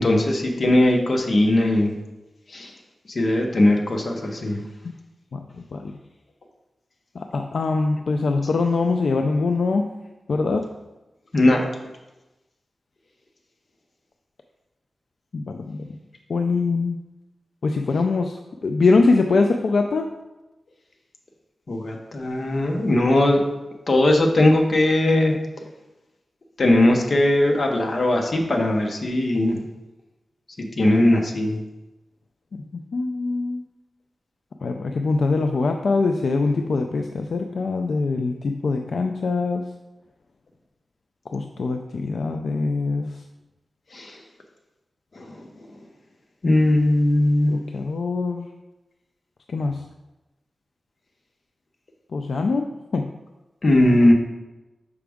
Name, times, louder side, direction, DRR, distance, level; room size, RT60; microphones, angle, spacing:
voice 1, 0.0-1.9 2.5-2.7 3.1-4.6 11.3-11.6 21.7-23.4 23.9-25.4 26.6-29.6 30.6-31.6 43.9-44.2 45.1-45.3 46.4-47.6 53.6-54.1, left 1 dB, 45° left, 2 dB, 0.9 m, -19 dB
voice 2, 7.2-9.9 10.3-10.7 15.3-15.9 16.3-17.0 17.6-18.4 18.6-20.1 32.5-32.6 32.9-33.6 34.6-39.7 41.3-43.1 47.5-48.5 49.5-49.8 52.1-52.7 52.9-53.1 53.9-54.1, left 3 dB, 70° left, 4 dB, 0.3 m, -23 dB
6.1 x 4.7 x 3.5 m, 1.0 s
wide cardioid pair, 145°, 0 cm